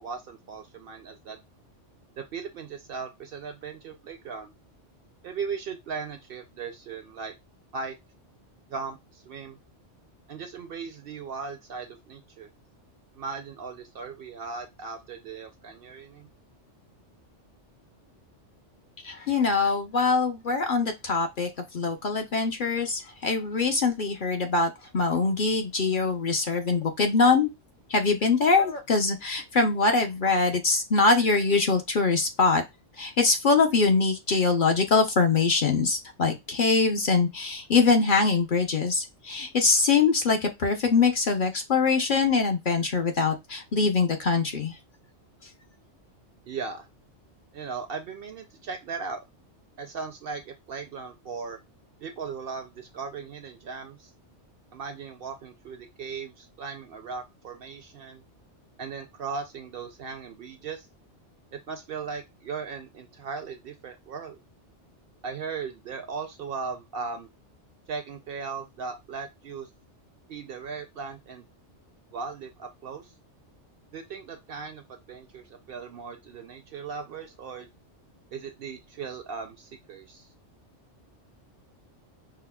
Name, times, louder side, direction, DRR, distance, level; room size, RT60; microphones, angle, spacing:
voice 1, 0.0-1.4 2.2-4.5 5.2-7.3 7.7-8.0 8.7-9.6 10.3-12.5 13.1-16.3 46.5-46.9 47.5-49.2 49.8-51.6 52.0-54.1 54.7-58.2 58.8-60.9 61.5-64.4 65.2-67.3 67.9-69.7 70.3-71.5 72.1-73.1 73.9-77.7 78.3-80.3, right 5 dB, 60° right, 6 dB, 0.7 m, -37 dB
voice 2, 19.0-27.5 27.9-32.6 33.0-44.8, left 4 dB, 50° left, 4 dB, 0.8 m, -23 dB
5.6 x 2.0 x 2.2 m, 0.20 s
omnidirectional pair, 1.2 m